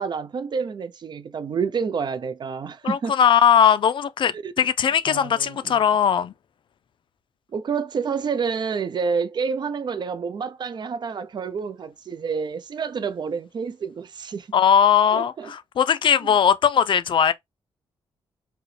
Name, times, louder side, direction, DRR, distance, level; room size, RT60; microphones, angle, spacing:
voice 1, 0.0-3.1 4.4-4.5 5.1-5.8 7.5-14.5 15.1-15.5, right 5 dB, 50° right, 0.5 m, -28 dB
voice 2, 2.8-6.3 14.5-17.3, left 8 dB, 55° left, 0.4 m, -19 dB
4.8 x 2.2 x 3.2 m
cardioid pair, 110°, 10 cm